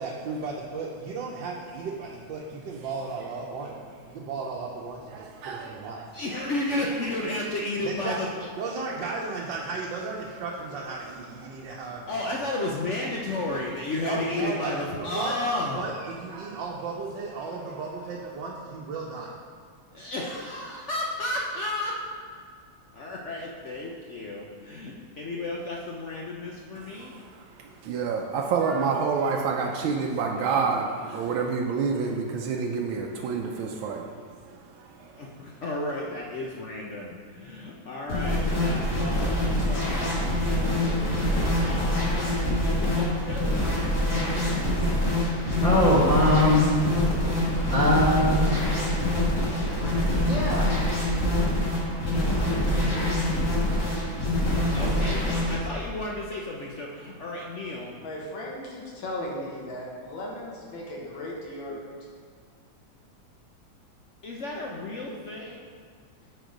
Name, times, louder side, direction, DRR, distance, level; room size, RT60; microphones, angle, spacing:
voice 1, 0.0-3.7 4.0-6.0 7.8-8.2 8.6-12.4 14.0-14.7 15.0-15.3 15.7-19.3, right 4 dB, 70° right, -4 dB, 1.4 m, -35 dB
voice 2, 5.1-6.1 10.4-10.5 11.4-11.8 14.4-14.5 16.3-16.6 17.7-17.8 26.8-35.2, right 5 dB, 85° right, 1 dB, 1.4 m, -29 dB
voice 3, 6.1-8.5 12.1-15.9 19.9-22.0 22.9-27.1 35.1-40.4 41.6-43.6 54.7-57.9 64.2-65.6, left 2 dB, 65° left, -2 dB, 0.7 m, -33 dB
sound 1, 38.1-55.5, left 1 dB, 50° left, 2.6 m, -25 dB
voice 4, 45.6-46.7 47.6-48.5 50.2-50.7, left 1 dB, 30° left, -6 dB, 0.7 m, -21 dB
voice 5, 58.0-61.9, left 1 dB, 80° left, -3 dB, 2.1 m, -36 dB
9.2 x 4.4 x 5.1 m, 2.1 s
omnidirectional pair, 2.1 m